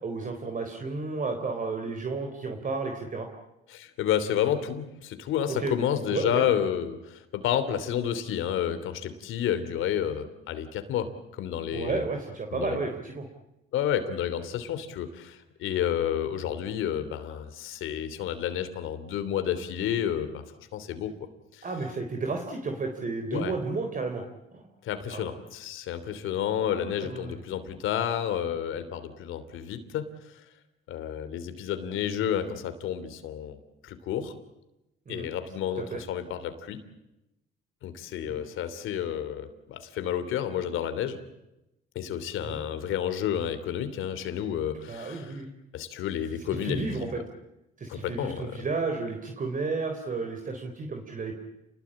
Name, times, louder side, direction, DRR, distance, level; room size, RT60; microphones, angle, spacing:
voice 1, 0.0-3.3 5.5-5.7 6.1-6.4 11.7-13.3 21.6-24.2 24.5-24.6 25.1-25.3 26.6-27.3 35.1-35.3 35.8-36.0 38.3-38.4 42.4-42.6 44.9-45.5 46.6-47.2 47.8-51.3, right 3 dB, 40° right, 5 dB, 3.8 m, -32 dB
voice 2, 3.7-12.0 12.5-12.9 13.7-20.4 20.7-21.1 21.5-21.6 23.3-23.5 24.8-30.4 30.9-33.6 33.8-34.3 35.1-36.8 37.8-41.2 41.9-45.4 45.7-47.1 47.9-48.5, left 9 dB, 90° left, 10 dB, 3.1 m, -30 dB
29.0 x 20.5 x 8.8 m, 0.94 s
cardioid pair, 90°, 20 cm